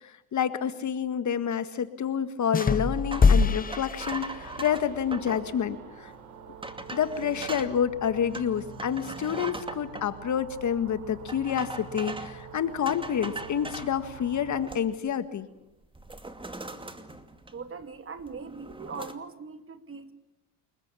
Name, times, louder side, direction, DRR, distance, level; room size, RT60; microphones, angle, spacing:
voice 1, 0.0-6.1 6.9-15.5, left 8 dB, 40° left, 11 dB, 1.8 m, -28 dB
sound 1, 2.5-4.7, left 5 dB, 20° left, 1.1 m, -24 dB
sound 2, 2.6-5.5 6.1-6.2 6.6-7.7 8.3-10.1 11.3-12.4 12.9-13.9 14.4-15.1 15.4-15.6 15.9-17.8 18.2-19.1, right 2 dB, 10° right, 2.4 m, -40 dB
sound 3, 4.0-14.7, right 6 dB, 85° right, 5.2 m, -45 dB
voice 2, 17.5-20.1, right 5 dB, 30° right, 9 dB, 2.6 m, -40 dB
29.5 x 21.5 x 7.2 m, 0.86 s
supercardioid pair, 85°, 46 cm